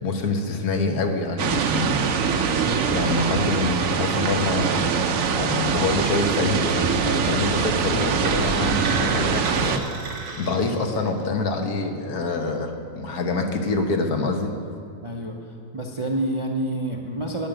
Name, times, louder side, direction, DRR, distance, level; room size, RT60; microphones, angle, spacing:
voice 1, 0.0-2.3 2.9-4.9 5.2-14.5, left 3 dB, 75° left, 4 dB, 1.5 m, -26 dB
sound 1, 1.4-9.8, right 6 dB, 65° right, 1.0 m, -23 dB
sound 2, 8.2-11.3, right 3 dB, 80° right, 1.9 m, -32 dB
voice 2, 15.0-15.5 15.7-17.5, right 1 dB, 30° right, 0 dB, 0.5 m, -28 dB
13.0 x 5.2 x 9.0 m, 2.3 s
omnidirectional pair, 1.6 m